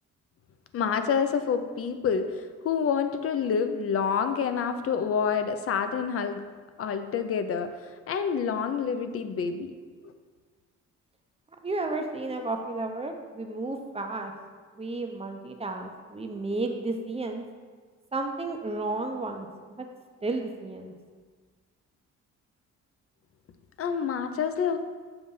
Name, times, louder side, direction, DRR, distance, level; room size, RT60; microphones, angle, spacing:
voice 1, 0.7-6.4 6.8-7.7 8.1-9.7 10.0-10.1 23.8-24.8, left 6 dB, 50° left, 9 dB, 0.5 m, -27 dB
voice 2, 11.6-14.3 14.8-17.4 18.1-19.9 20.2-20.9, right 2 dB, 20° right, 4 dB, 0.6 m, -32 dB
6.8 x 2.6 x 5.4 m, 1.5 s
cardioid pair, 90°, 30 cm